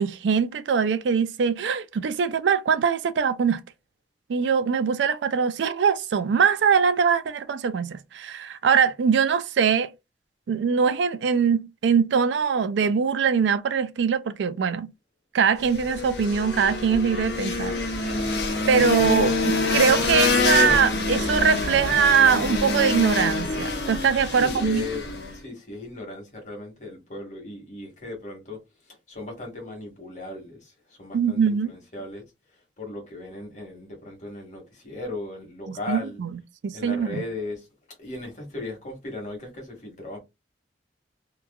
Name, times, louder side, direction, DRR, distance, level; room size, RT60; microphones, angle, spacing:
voice 1, 0.0-3.6 4.3-9.9 10.5-14.9 15.3-17.7 18.0-18.3 18.7-24.9 31.1-31.7 35.7-37.2, right 6 dB, 85° right, 0.4 m, -22 dB
sound 1, 15.6-25.4, left 3 dB, 65° left, 0.8 m, -26 dB
voice 2, 24.4-25.0 25.3-28.6 28.9-32.2 32.8-36.2 36.7-37.7 38.0-40.2, left 2 dB, 45° left, 1.2 m, -37 dB
2.9 x 2.4 x 2.2 m
head